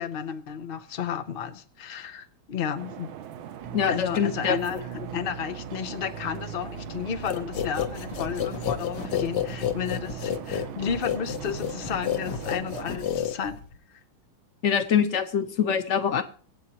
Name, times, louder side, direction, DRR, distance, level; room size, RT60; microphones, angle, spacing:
voice 1, 0.0-3.1 3.9-4.8 5.1-13.6, left 8 dB, 85° left, 0.5 m, -32 dB
sound 1, 2.8-12.9, right 9 dB, 85° right, 1.6 m, -42 dB
Bass guitar, 3.6-13.2, right 6 dB, 70° right, 1.5 m, -41 dB
voice 2, 3.7-4.8 14.6-16.2, left 7 dB, 50° left, 1.0 m, -24 dB
sound 2, 7.3-13.8, left 9 dB, 65° left, 1.5 m, -30 dB
24.5 x 8.5 x 3.0 m
omnidirectional pair, 2.1 m